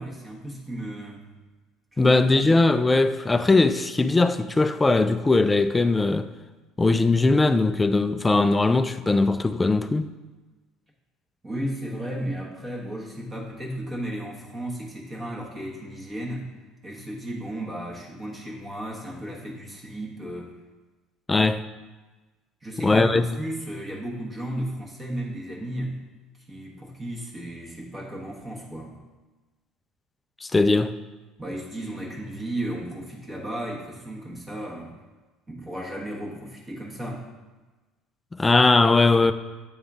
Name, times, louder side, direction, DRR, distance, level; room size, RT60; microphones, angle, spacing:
voice 1, 0.0-1.3 1.9-2.5 11.4-16.5 16.8-20.5 22.6-26.0 26.5-29.0 31.4-34.9 35.5-37.3, right 1 dB, 25° right, 1.2 m, -34 dB
voice 2, 2.0-6.3 6.8-10.1 21.3-21.6 22.8-23.3 30.4-30.9 38.4-39.3, left 3 dB, 20° left, 0.4 m, -20 dB
8.7 x 3.5 x 3.6 m
hypercardioid pair, 70°, 0 cm